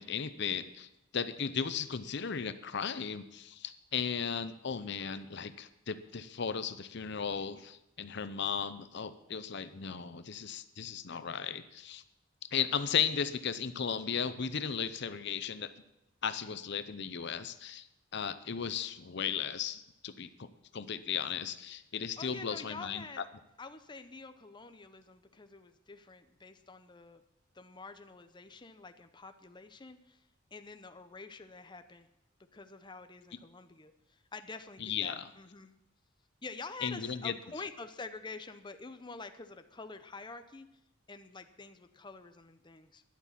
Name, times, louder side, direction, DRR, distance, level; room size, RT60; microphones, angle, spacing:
voice 1, 0.0-12.0 12.5-15.7 16.2-17.9 18.1-23.2 34.8-35.3 36.8-37.3, left 7 dB, 60° left, 12 dB, 0.7 m, -36 dB
voice 2, 22.2-23.3 23.6-27.2 27.5-30.2 30.5-32.1 32.5-35.7 36.4-40.7 41.1-43.0, left 3 dB, 25° left, 9 dB, 0.7 m, -47 dB
12.5 x 10.5 x 7.4 m, 0.86 s
head